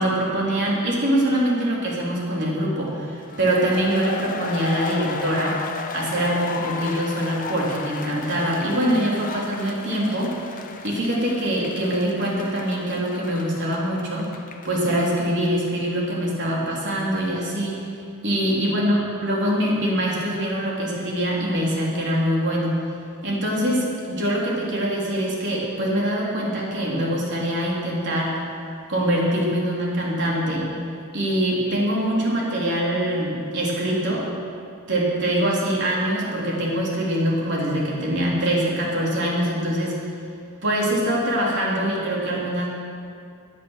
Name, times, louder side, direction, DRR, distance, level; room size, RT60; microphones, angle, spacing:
voice 1, 0.0-5.6 5.9-10.6 10.8-14.3 14.6-17.8 18.2-22.7 23.2-28.3 28.9-30.7 31.1-34.3 34.9-40.0 40.6-42.7, right 1 dB, 55° right, -4 dB, 3.6 m, -23 dB
sound 1, 3.2-14.9, left 4 dB, 40° left, 0.9 m, -34 dB
16.0 x 11.0 x 6.5 m, 2.4 s
head